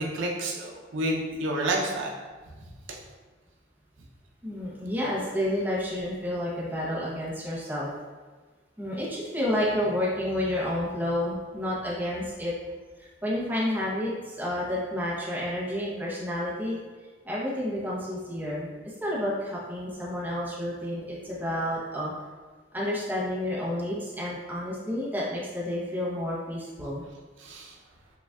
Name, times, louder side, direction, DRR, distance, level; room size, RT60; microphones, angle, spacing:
voice 1, 0.0-2.1 2.9-3.0 27.4-27.7, right 1 dB, 80° right, -1 dB, 0.6 m, -29 dB
voice 2, 4.4-7.9 8.8-12.5 13.0-16.7 17.2-22.1 22.7-27.0, left 1 dB, 10° right, -6 dB, 0.8 m, -30 dB
6.7 x 2.4 x 2.3 m, 1.4 s
head